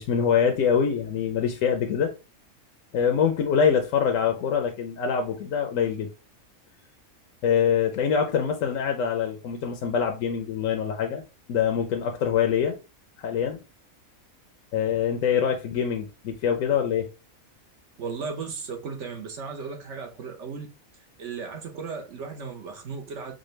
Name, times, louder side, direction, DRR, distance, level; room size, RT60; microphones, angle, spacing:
voice 1, 0.0-2.1 2.9-6.1 7.4-11.2 11.5-12.8 13.2-13.6 14.7-17.1, left 7 dB, 70° left, 0.9 m, -24 dB
voice 2, 18.0-20.7 21.2-23.3, right 5 dB, 60° right, 1.0 m, -35 dB
5.0 x 2.2 x 3.1 m
omnidirectional pair, 1.5 m